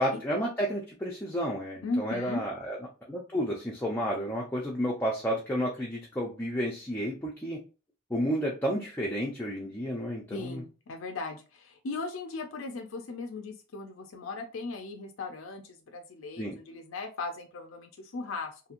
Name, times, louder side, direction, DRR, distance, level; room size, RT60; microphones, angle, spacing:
voice 1, 0.0-2.8 3.1-7.6 8.1-10.6 16.4-16.6, equal, 10° left, -3 dB, 0.5 m, -31 dB
voice 2, 1.8-2.5 10.3-18.6, left 3 dB, 80° left, 4 dB, 0.5 m, -37 dB
2.9 x 2.7 x 2.5 m, 0.33 s
head